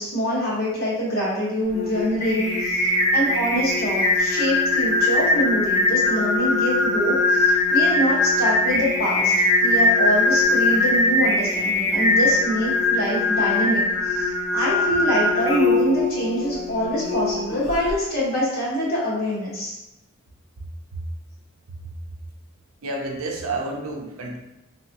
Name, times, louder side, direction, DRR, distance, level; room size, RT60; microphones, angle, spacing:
voice 1, 0.0-9.3 9.6-19.7, equal, 45° left, -7 dB, 1.3 m, -25 dB
Singing, 1.7-17.9, left 2 dB, 30° left, 1.1 m, -21 dB
voice 2, 22.8-24.4, right 2 dB, 85° right, 1 dB, 0.5 m, -30 dB
3.0 x 2.7 x 2.8 m, 0.93 s
head